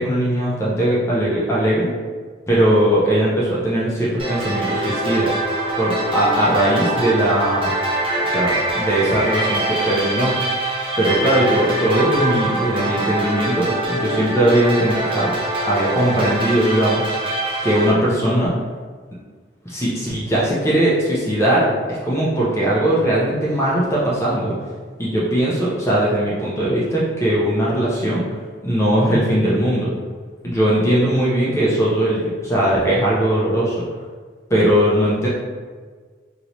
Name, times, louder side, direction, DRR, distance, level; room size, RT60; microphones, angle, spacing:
voice 1, 0.0-1.9 2.5-5.4 5.8-7.7 8.2-10.3 11.0-15.3 15.7-17.4 17.6-18.5 19.6-24.6 25.0-28.3 28.6-29.9 30.4-33.8 34.5-35.3, right 1 dB, 15° left, -6 dB, 0.5 m, -19 dB
sound 1, 4.2-17.9, right 1 dB, 30° right, 0.6 m, -23 dB
3.1 x 2.9 x 2.7 m, 1.5 s
head